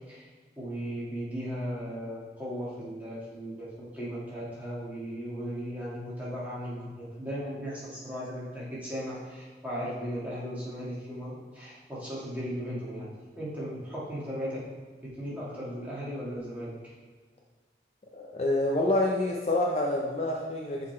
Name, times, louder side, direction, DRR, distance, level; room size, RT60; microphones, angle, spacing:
voice 1, 0.6-14.6 15.0-16.7, equal, 10° right, -8 dB, 1.9 m, -37 dB
voice 2, 18.1-20.9, left 2 dB, 35° left, -1 dB, 0.6 m, -27 dB
6.4 x 3.9 x 4.5 m, 1.5 s
head